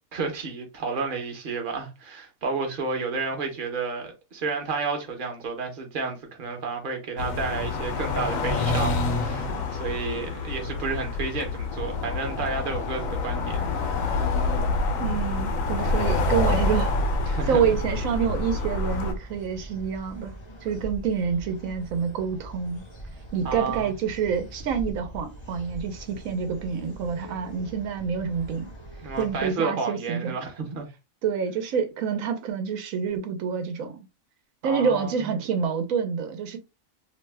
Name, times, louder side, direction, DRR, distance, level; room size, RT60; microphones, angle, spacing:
voice 1, 0.1-13.8 17.3-17.7 23.4-23.9 27.2-27.3 29.0-30.9 34.6-35.3, right 4 dB, 45° right, 0.9 m, -31 dB
sound 1, 7.2-19.1, left 3 dB, 80° left, 1.1 m, -27 dB
sound 2, 11.7-29.5, right 1 dB, 30° left, 0.5 m, -41 dB
voice 2, 15.0-16.9 17.5-20.3 20.6-22.8 23.3-28.7 29.2-30.4 31.2-34.1 34.6-36.6, right 6 dB, 90° right, 1.1 m, -27 dB
2.7 x 2.1 x 3.2 m
omnidirectional pair, 1.4 m